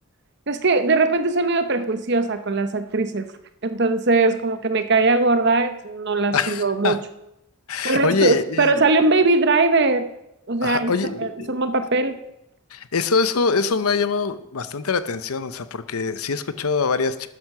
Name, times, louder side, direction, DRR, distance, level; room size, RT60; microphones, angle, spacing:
voice 1, 0.5-3.3 3.6-7.0 7.8-10.1 10.5-10.9 11.2-12.2, right 3 dB, 50° right, 10 dB, 0.9 m, -20 dB
voice 2, 6.3-7.0 7.7-8.9 10.6-11.6 12.7-17.3, left 5 dB, 90° left, 12 dB, 0.8 m, -24 dB
12.0 x 9.5 x 6.1 m, 0.84 s
head